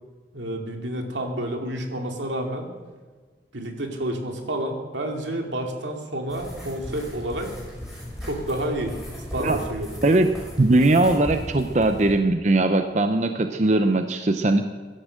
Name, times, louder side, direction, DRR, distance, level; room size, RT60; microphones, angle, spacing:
voice 1, 0.3-2.7 3.5-7.5 8.2-9.0 9.3-9.9, right 1 dB, 85° right, 3 dB, 2.4 m, -29 dB
sound 1, 6.3-12.1, left 1 dB, ahead, 5.6 m, -37 dB
voice 2, 10.0-10.3 10.6-14.7, right 2 dB, 40° right, 7 dB, 0.7 m, -20 dB
16.5 x 12.0 x 6.4 m, 1.4 s
head